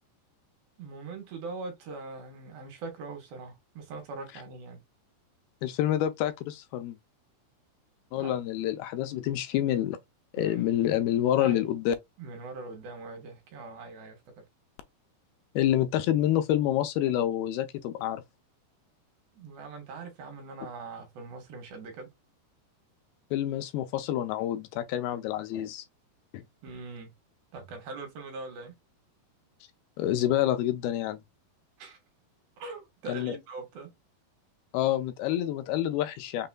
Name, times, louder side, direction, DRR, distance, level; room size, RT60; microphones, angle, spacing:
voice 1, 0.8-4.8 8.1-8.3 10.4-10.7 11.4-11.7 12.2-14.4 19.3-22.1 26.6-27.1 27.5-28.7 31.8-32.0 32.6-33.9, right 3 dB, 70° right, 3.1 m, -42 dB
voice 2, 5.6-7.0 8.1-10.0 10.3-11.9 15.6-18.2 23.3-25.8 26.3-26.4 30.0-31.2 33.1-33.4 34.7-36.5, left 12 dB, 80° left, 2.4 m, -27 dB
6.6 x 2.9 x 2.2 m
omnidirectional pair, 4.7 m